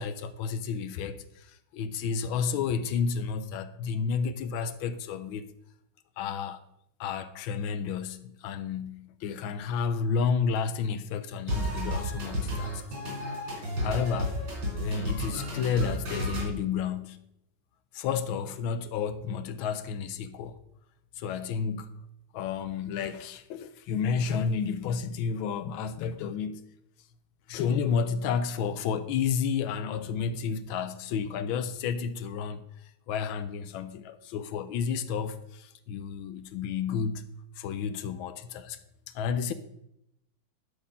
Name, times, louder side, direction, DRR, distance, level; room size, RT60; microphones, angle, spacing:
voice 1, 0.0-5.5 6.2-6.6 7.0-12.8 13.8-14.4 14.7-17.2 17.9-20.6 21.2-21.9 22.3-26.6 27.5-37.3 37.6-38.8 39.1-39.5, left 6 dB, 85° left, 1.4 m, -31 dB
sound 1, 11.5-16.4, equal, 75° right, 4.5 m, -32 dB
11.5 x 4.2 x 5.4 m
omnidirectional pair, 2.2 m